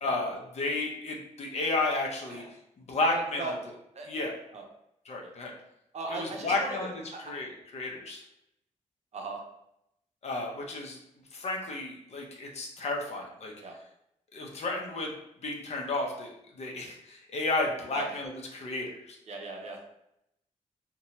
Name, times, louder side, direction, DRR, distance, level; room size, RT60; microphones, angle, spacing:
voice 1, 0.0-2.4 2.8-3.6 4.1-4.3 5.1-5.5 6.1-6.9 7.3-8.2 10.2-11.0 11.3-13.5 14.3-15.1 15.4-19.2, left 2 dB, 55° left, 0 dB, 0.6 m, -32 dB
voice 2, 3.1-3.5 3.9-4.1 4.5-4.7 5.2-5.3 5.9-7.2 9.1-9.4 13.6-13.8 17.9-18.2 19.3-19.8, right 3 dB, 60° right, 1 dB, 0.6 m, -38 dB
2.7 x 2.2 x 2.9 m, 0.81 s
cardioid pair, 105°, 13 cm